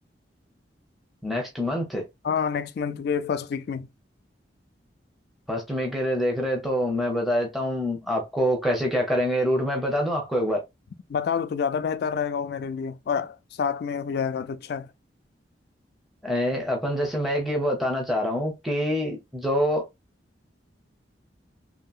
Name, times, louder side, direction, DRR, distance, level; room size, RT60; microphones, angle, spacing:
voice 1, 1.2-2.1 5.5-10.6 16.2-19.9, equal, ahead, 0.6 m, -25 dB
voice 2, 2.2-3.9 11.1-14.9, left 6 dB, 60° left, 0.3 m, -28 dB
2.8 x 2.8 x 2.3 m
head